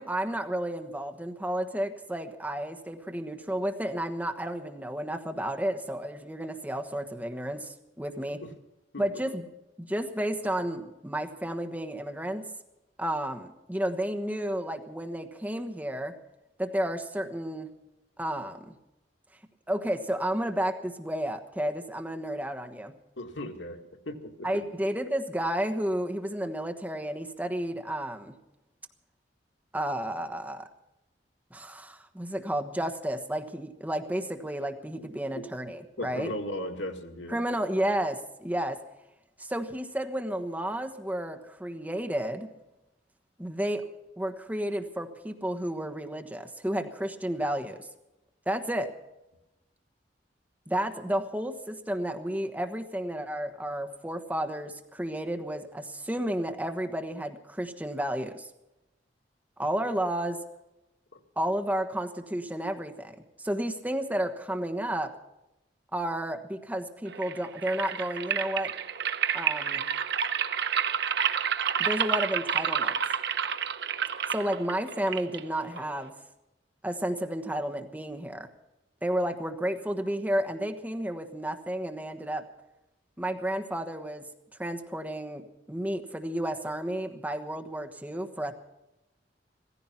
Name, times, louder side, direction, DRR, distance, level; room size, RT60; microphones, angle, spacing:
voice 1, 0.0-8.4 9.0-9.5 9.8-12.5 13.0-16.1 16.6-17.7 18.2-18.7 19.7-23.0 24.4-28.4 29.7-30.7 31.5-36.3 37.3-38.8 39.4-42.5 43.4-43.8 44.2-47.9 48.5-48.9 50.7-58.5 59.6-60.4 61.4-65.1 65.9-68.7 69.3-69.8 71.8-72.9 74.3-76.2 76.8-78.5 79.0-82.5 83.2-84.3 84.6-88.5, right 1 dB, 10° right, 6 dB, 1.3 m, -32 dB
voice 2, 8.2-8.5 8.9-9.1 23.2-23.8 24.1-24.6 35.0-35.1 35.4-35.5 36.0-37.4 61.1-61.2, left 1 dB, 85° left, 4 dB, 2.0 m, -37 dB
sound 1, 67.1-76.1, right 8 dB, 65° right, 0.8 m, -30 dB
16.5 x 15.0 x 5.8 m, 0.95 s
head